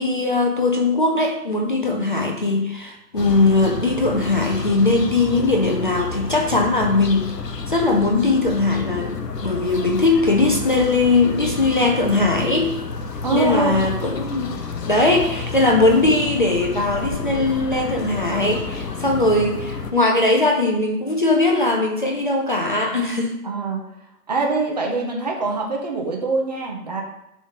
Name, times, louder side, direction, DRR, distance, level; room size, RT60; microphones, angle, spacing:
voice 1, 0.0-7.3 7.7-12.7 13.3-14.5 14.9-23.4, left 2 dB, 35° left, 2 dB, 0.6 m, -20 dB
sound 1, 3.2-19.9, left 4 dB, 85° left, 0.9 m, -30 dB
voice 2, 13.2-13.8 23.4-23.8 24.3-27.0, right 3 dB, 25° right, 0 dB, 0.8 m, -23 dB
6.9 x 3.2 x 5.5 m, 0.86 s
figure-of-eight pair, 150°, 48 cm